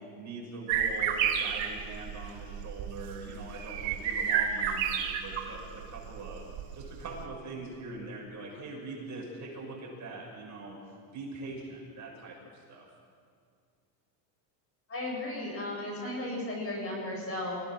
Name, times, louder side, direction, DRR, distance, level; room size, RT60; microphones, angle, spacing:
voice 1, 0.1-6.4 6.7-10.8 11.1-12.9, right 3 dB, 35° right, -3 dB, 6.6 m, -42 dB
sound 1, 0.7-5.6 5.8-6.8, right 8 dB, 65° right, 2.9 m, -30 dB
voice 2, 14.9-17.6, left 1 dB, 25° left, -1 dB, 7.2 m, -35 dB
25.5 x 17.0 x 6.4 m, 2.2 s
supercardioid pair, 120°, 49 cm